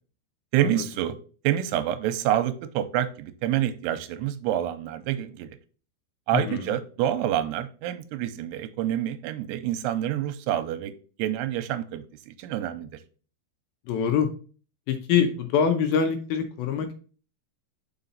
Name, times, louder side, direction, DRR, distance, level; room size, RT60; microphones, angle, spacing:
voice 1, 0.5-1.2 1.4-5.5 6.3-10.9 11.2-12.9, right 12 dB, 90° right, 10 dB, 2.7 m, -27 dB
voice 2, 6.3-6.7 13.9-14.3 14.9-16.9, left 7 dB, 75° left, 7 dB, 2.4 m, -24 dB
5.6 x 4.9 x 3.9 m, 0.37 s
omnidirectional pair, 4.7 m